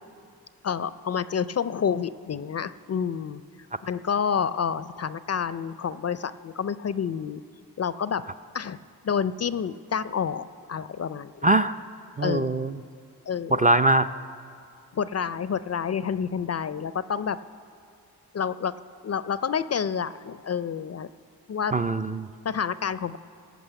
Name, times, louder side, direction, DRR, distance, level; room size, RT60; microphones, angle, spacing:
voice 1, 0.6-3.4 3.8-7.4 7.8-8.2 8.5-8.8 9.0-11.5 12.2-12.5 13.3-13.7 14.9-17.4 18.3-18.7 19.0-21.1 21.5-21.7 22.4-23.2, left 7 dB, 40° left, 15 dB, 0.4 m, -29 dB
voice 2, 11.4-11.7 12.2-12.8 13.5-14.1 21.7-22.3, right 2 dB, 20° right, 9 dB, 0.4 m, -22 dB
17.0 x 6.1 x 8.0 m, 2.4 s
cardioid pair, 60°, 40 cm